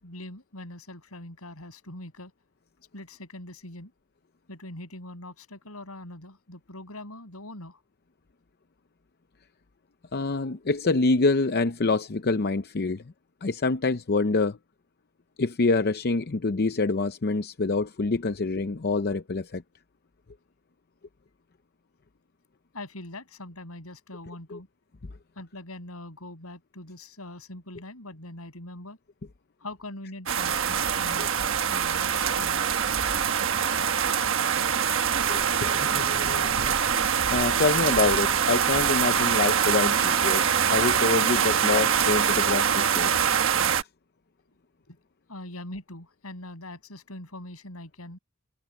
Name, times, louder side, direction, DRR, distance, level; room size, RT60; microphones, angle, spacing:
voice 1, 0.0-2.3 2.9-3.9 4.5-7.8 22.7-24.7 25.4-29.0 29.6-32.9 44.9-45.0 45.3-48.2, left 1 dB, 80° left, 7.4 m, -42 dB
voice 2, 10.1-13.0 13.4-14.6 15.4-19.6 24.5-24.6 34.5-34.6 35.3-36.8 37.3-43.1, left 3 dB, 50° left, 0.7 m, -26 dB
sound 1, 30.3-43.8, right 8 dB, 65° right, 1.3 m, -24 dB
head